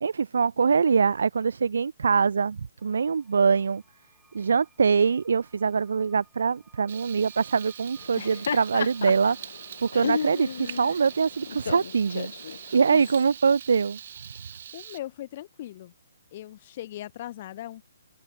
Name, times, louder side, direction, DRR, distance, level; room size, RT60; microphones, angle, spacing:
voice 1, 0.0-3.8 4.3-9.4 9.8-12.3 12.7-14.0, right 5 dB, 70° right, 0.3 m, -23 dB
sound 1, 2.8-14.7, right 5 dB, 5° right, 6.8 m, -64 dB
Frying (food), 6.9-15.0, right 9 dB, 45° right, 2.7 m, -43 dB
Laughter, 8.0-13.2, left 7 dB, 55° left, 1.2 m, -34 dB
voice 2, 14.7-15.9 16.3-17.9, left 13 dB, 35° left, 0.6 m, -39 dB
open air
hypercardioid pair, 165°, 0 cm